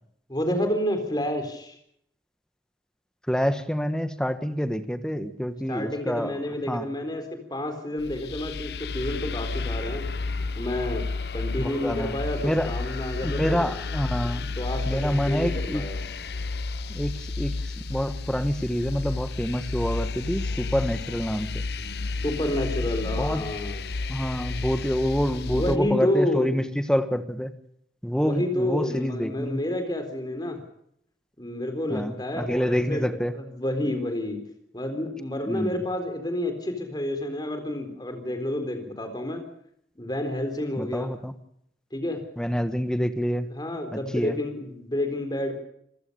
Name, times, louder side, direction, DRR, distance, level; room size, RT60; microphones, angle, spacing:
voice 1, 0.3-1.8 5.7-7.2 7.5-10.1 10.5-11.0 11.3-13.7 14.6-16.0 22.2-23.8 25.4-26.5 28.2-30.6 31.4-34.4 34.7-39.4 40.0-41.1 41.9-42.2 43.5-45.5, left 1 dB, 25° left, 6 dB, 4.0 m, -29 dB
voice 2, 3.3-6.4 6.7-6.9 11.6-12.1 12.4-12.7 13.2-14.5 14.9-15.8 16.9-21.6 23.2-23.4 24.1-27.5 28.0-29.6 31.9-33.3 35.5-35.8 40.8-41.3 42.4-43.5 43.9-44.4, equal, 5° left, 10 dB, 1.3 m, -27 dB
sound 1, 8.0-25.8, left 3 dB, 65° left, 0.8 m, -31 dB
27.5 x 15.5 x 6.9 m, 0.71 s
head